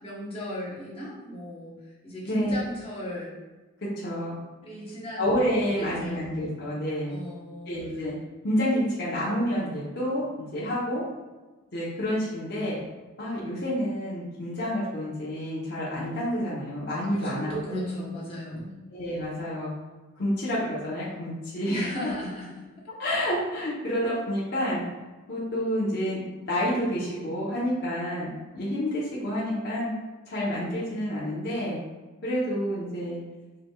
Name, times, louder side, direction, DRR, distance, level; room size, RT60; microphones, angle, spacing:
voice 1, 0.0-1.7 2.0-3.3 4.6-6.3 7.1-7.8 17.1-18.7 21.7-22.5, equal, 25° left, -6 dB, 1.0 m, -35 dB
voice 2, 2.3-2.6 4.0-4.3 5.2-7.2 7.7-8.1 8.4-10.3 10.5-11.0 11.7-12.8 13.2-17.8 18.9-19.7 20.2-21.9 23.0-24.8 25.3-26.2 26.5-29.9 30.3-31.8 32.2-33.2, equal, 50° left, -8 dB, 0.9 m, -29 dB
4.9 x 3.2 x 2.3 m, 1.2 s
head